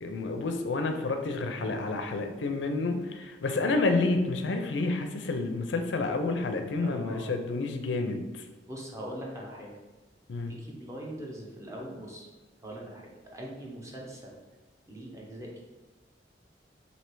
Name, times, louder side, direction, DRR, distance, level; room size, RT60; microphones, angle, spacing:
voice 1, 0.0-8.4 10.3-10.5, left 3 dB, 90° left, 6 dB, 0.5 m, -29 dB
voice 2, 6.8-7.4 8.6-9.7 10.5-12.3 12.6-14.4 14.9-15.6, equal, 15° right, -3 dB, 0.8 m, -41 dB
3.3 x 2.7 x 4.5 m, 1.2 s
head